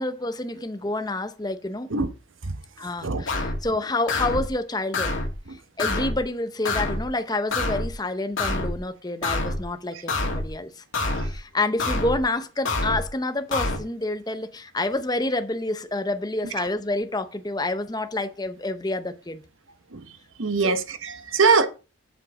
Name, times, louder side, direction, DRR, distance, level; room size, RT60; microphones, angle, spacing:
voice 1, 0.0-1.9 2.8-5.3 5.8-10.8 11.2-19.4 20.6-20.8, left 2 dB, 20° left, 0.7 m, -28 dB
sound 1, 3.3-3.6 4.1-4.5 4.9-5.4 5.8-6.2 6.6-7.1 7.5-7.9 8.4-8.8 9.2-9.6 10.1-10.5 10.9-11.4 11.8-12.2 12.6-13.1 13.5-13.8, left 2 dB, 75° left, 2.3 m, -26 dB
voice 2, 20.4-21.7, right 4 dB, 80° right, 1.1 m, -22 dB
7.9 x 7.3 x 4.9 m
head